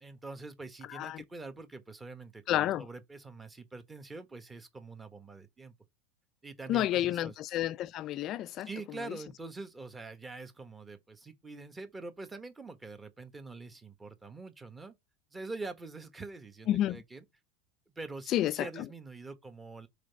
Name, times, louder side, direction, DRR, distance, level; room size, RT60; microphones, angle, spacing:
voice 1, 0.0-5.7 6.4-7.3 8.6-14.9 15.3-17.2 17.9-19.9, right 3 dB, 15° right, 1.3 m, -45 dB
voice 2, 0.9-1.2 2.5-2.9 6.7-8.7 9.0-9.2 16.7-17.0 18.3-18.7, left 13 dB, 45° left, 0.4 m, -30 dB
5.0 x 4.0 x 4.7 m
supercardioid pair, 115°, 0 cm